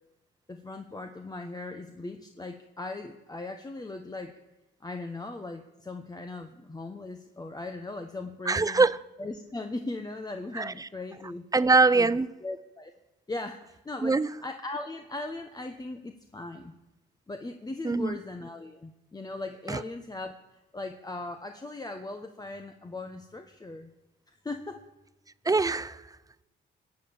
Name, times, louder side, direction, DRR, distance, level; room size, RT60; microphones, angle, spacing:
voice 1, 0.5-4.4 4.8-8.9 9.2-11.5 11.9-12.9 13.3-16.7 17.3-20.4 20.7-23.9 24.3-24.8, left 2 dB, 20° left, 1.2 m, -39 dB
voice 2, 8.5-9.0 10.5-10.9 11.5-12.3 14.0-14.3 17.8-18.1 19.7-19.8 25.4-26.0, right 3 dB, 20° right, 0.5 m, -23 dB
22.0 x 8.5 x 7.3 m
cardioid pair, 90°, 20 cm